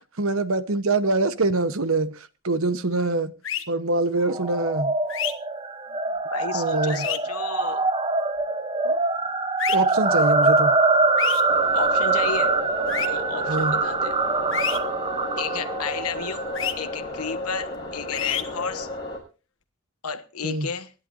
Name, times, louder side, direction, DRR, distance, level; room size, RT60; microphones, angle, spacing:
voice 1, 0.2-3.3 3.7-5.0 6.5-7.1 8.8-9.0 9.7-10.8 13.5-13.8 20.4-20.7, right 3 dB, 70° right, 1.0 m, -24 dB
sound 1, 3.4-3.6 5.1-5.3 6.9-7.2 9.6-9.8 11.2-11.4 12.9-13.1 14.5-14.8 16.5-16.7 18.1-18.4, left 10 dB, 60° left, 1.3 m, -27 dB
sound 2, 4.3-16.7, right 3 dB, 25° right, 0.7 m, -24 dB
voice 2, 6.3-7.9 11.7-12.5 13.0-14.1 15.4-16.4 16.8-18.9 20.0-20.9, left 5 dB, 90° left, 1.2 m, -32 dB
sound 3, 11.5-19.2, left 1 dB, 20° left, 6.4 m, -33 dB
25.5 x 11.0 x 2.6 m
head